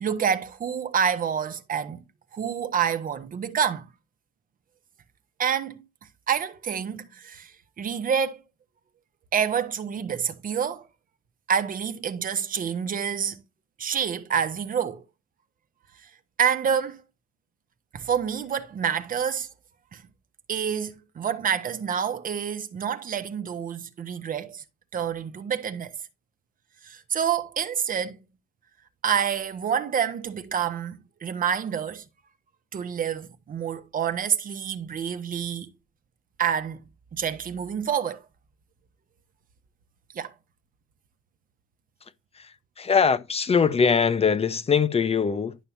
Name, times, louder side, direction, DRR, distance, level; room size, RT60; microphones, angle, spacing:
voice 1, 0.0-2.0 2.3-3.8 5.4-5.8 6.3-7.5 7.8-8.4 9.3-10.9 11.5-13.4 13.8-15.0 16.4-17.0 17.9-19.5 19.9-20.0 20.5-24.6 24.9-25.9 26.8-28.2 29.0-32.0 32.7-35.7 36.4-38.2 40.1-40.3, right 7 dB, 40° right, 1.1 m, -27 dB
voice 2, 42.4-45.6, left 6 dB, 30° left, 0.9 m, -22 dB
11.5 x 5.7 x 2.8 m
cardioid pair, 95°, 21 cm